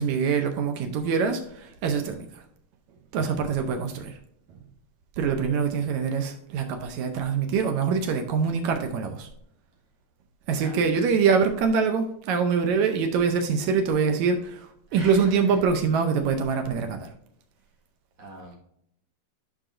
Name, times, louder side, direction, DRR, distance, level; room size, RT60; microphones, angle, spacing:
voice 1, 0.0-2.4 3.1-4.2 5.2-9.3 10.5-17.1, right 6 dB, 80° right, 5 dB, 1.6 m, -24 dB
voice 2, 3.1-3.8 10.7-10.8 14.9-15.5 18.2-18.6, right 1 dB, 50° right, -3 dB, 2.3 m, -43 dB
11.5 x 4.9 x 2.6 m, 0.72 s
omnidirectional pair, 4.1 m